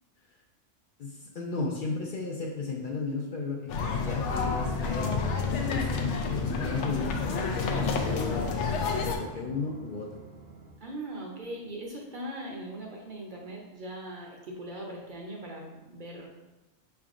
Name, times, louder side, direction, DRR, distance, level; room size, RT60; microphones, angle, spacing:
voice 1, 1.0-7.1 7.5-8.5 9.0-10.1, left 4 dB, 60° left, -1 dB, 0.6 m, -34 dB
sound 1, 3.7-9.2, left 4 dB, 80° left, 0.9 m, -29 dB
sound 2, 7.0-10.7, right 4 dB, 90° right, 1.2 m, -45 dB
voice 2, 10.8-16.3, right 1 dB, 50° right, -1 dB, 0.7 m, -40 dB
5.6 x 3.5 x 2.4 m, 1.1 s
omnidirectional pair, 1.2 m